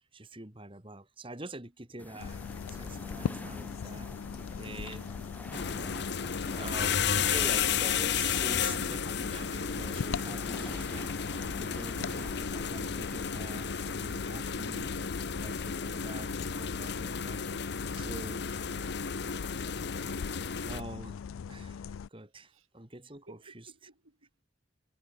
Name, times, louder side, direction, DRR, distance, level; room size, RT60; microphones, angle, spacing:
voice 1, 0.1-2.4 2.7-4.1 4.5-5.1 6.5-11.1 11.5-15.1 15.4-17.4 17.9-18.4 20.6-21.2 21.5-23.7, right 2 dB, 25° right, 2.1 m, -45 dB
sound 1, 2.0-14.0, left 1 dB, 10° left, 2.1 m, -47 dB
sound 2, 2.2-22.1, left 6 dB, 90° left, 0.4 m, -40 dB
voice 2, 4.8-5.1 22.5-22.7 23.3-24.3, right 1 dB, 90° right, 5.7 m, -58 dB
sound 3, 5.5-20.8, left 7 dB, 55° left, 1.0 m, -33 dB
head